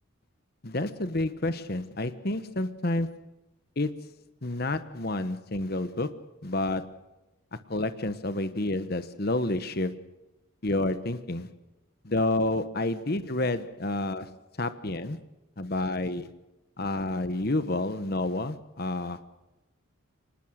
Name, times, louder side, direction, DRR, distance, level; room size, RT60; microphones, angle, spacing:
voice 1, 0.6-3.3 3.8-4.1 4.4-7.0 7.5-10.0 10.6-11.5 12.0-15.2 15.6-16.3 16.8-19.2, left 2 dB, 45° left, 1.1 m, -29 dB
25.5 x 20.0 x 6.4 m
head